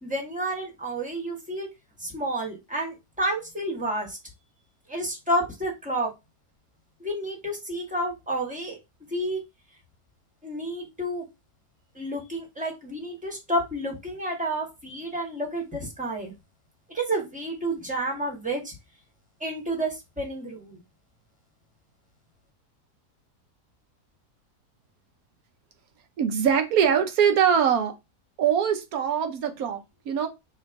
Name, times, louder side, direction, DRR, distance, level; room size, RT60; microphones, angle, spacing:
voice 1, 0.0-1.7 2.0-4.2 4.9-6.1 7.0-8.8 9.1-9.4 10.4-11.3 11.9-16.3 16.9-18.7 19.4-20.8, right 1 dB, 5° right, 1.3 m, -30 dB
voice 2, 26.2-27.9 28.4-30.3, right 8 dB, 70° right, 1.1 m, -23 dB
3.5 x 2.9 x 4.5 m
omnidirectional pair, 1.7 m